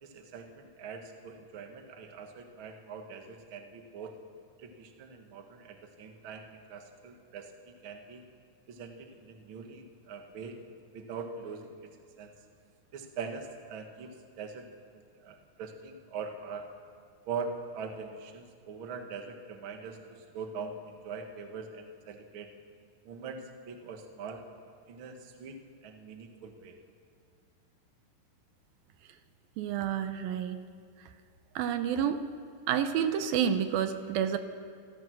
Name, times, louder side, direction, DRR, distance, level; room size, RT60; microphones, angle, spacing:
voice 1, 0.0-4.2 4.6-7.5 7.8-8.2 8.7-10.5 10.9-11.8 12.2-12.3 12.9-14.6 15.2-16.7 17.3-22.5 23.0-24.4 24.9-26.8, right 5 dB, 50° right, 5 dB, 1.8 m, -42 dB
voice 2, 29.6-30.6 31.6-32.2 32.7-34.4, right 8 dB, 80° right, 9 dB, 2.6 m, -29 dB
27.0 x 16.0 x 6.3 m, 2.1 s
omnidirectional pair, 4.2 m